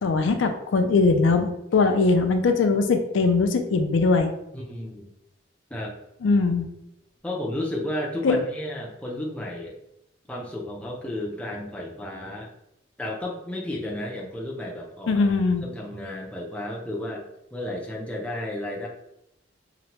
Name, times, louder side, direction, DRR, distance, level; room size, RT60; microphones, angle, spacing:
voice 1, 0.0-4.3 6.2-6.6 8.2-8.4 15.1-15.6, left 4 dB, 80° left, 7 dB, 0.4 m, -21 dB
voice 2, 4.5-5.1 5.7-5.9 7.2-9.8 10.3-12.5 13.0-15.3 15.6-17.2 17.5-18.9, left 1 dB, 5° left, -3 dB, 0.4 m, -32 dB
2.9 x 2.1 x 2.8 m, 0.81 s
head